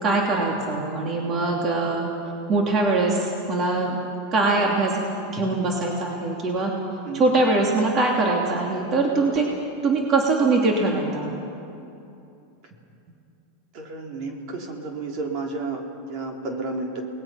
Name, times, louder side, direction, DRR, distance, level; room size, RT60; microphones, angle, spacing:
voice 1, 0.0-2.1 2.5-4.0 4.3-5.0 5.3-6.7 7.1-9.4 9.8-11.4, right 3 dB, 35° right, -1 dB, 2.9 m, -22 dB
voice 2, 13.7-17.0, right 3 dB, 50° right, 1 dB, 3.5 m, -32 dB
29.0 x 20.0 x 5.8 m, 2.8 s
supercardioid pair, 130°, 0 cm